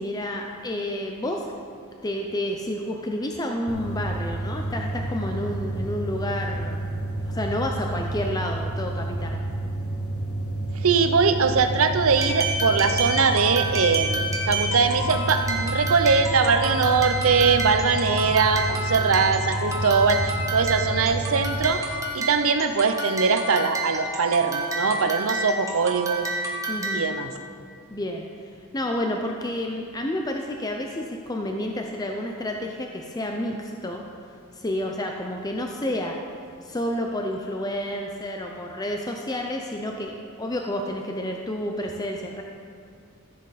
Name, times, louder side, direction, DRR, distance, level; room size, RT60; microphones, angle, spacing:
voice 1, 0.0-1.5 2.0-6.9 7.3-9.4 26.7-27.0 27.9-34.0 34.5-36.2 36.6-42.4, left 1 dB, 20° left, 2 dB, 0.5 m, -30 dB
sound 1, 3.7-21.5, right 1 dB, 80° left, 1.5 m, -30 dB
voice 2, 10.7-21.8 22.1-26.3 26.9-27.3, right 5 dB, 70° right, 8 dB, 0.7 m, -22 dB
sound 2, 12.2-27.2, right 2 dB, 15° right, 1.1 m, -30 dB
14.0 x 7.6 x 4.1 m, 2.3 s
head